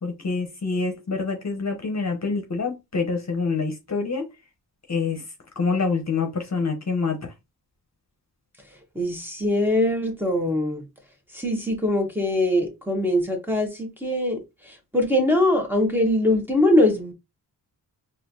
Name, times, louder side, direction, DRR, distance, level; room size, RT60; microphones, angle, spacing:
voice 1, 0.0-4.3 4.9-5.2 5.6-7.2, left 4 dB, 45° left, 0.9 m, -26 dB
voice 2, 8.9-10.8 11.3-17.1, left 1 dB, 5° right, 1.1 m, -22 dB
4.2 x 2.6 x 2.7 m
wide cardioid pair, 70°, 39 cm